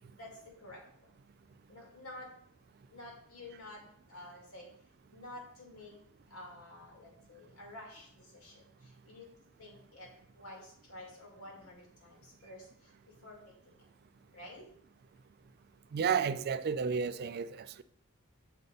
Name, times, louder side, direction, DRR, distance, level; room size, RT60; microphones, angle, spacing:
voice 1, 0.1-1.2 1.7-2.3 2.9-4.7 5.1-6.0 6.3-9.3 9.6-13.9 14.3-14.7, left 1 dB, 90° left, 2.3 m, -51 dB
voice 2, 15.9-17.8, right 6 dB, 45° right, 0.3 m, -32 dB
6.6 x 4.0 x 5.1 m
head